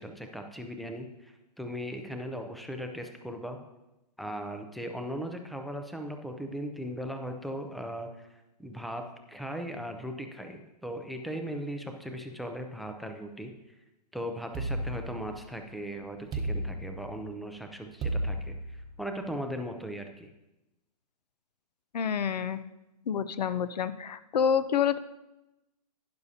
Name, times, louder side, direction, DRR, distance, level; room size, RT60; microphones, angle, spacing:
voice 1, 0.0-3.6 4.2-13.5 14.1-20.3, equal, ahead, 5 dB, 0.4 m, -38 dB
sound 1, 14.5-15.7 16.3-17.4 18.0-19.1, right 1 dB, 15° right, 0.9 m, -33 dB
voice 2, 21.9-22.6 23.1-25.0, left 7 dB, 80° left, 14 dB, 0.6 m, -28 dB
12.0 x 9.8 x 2.7 m, 0.97 s
hypercardioid pair, 150°, 21 cm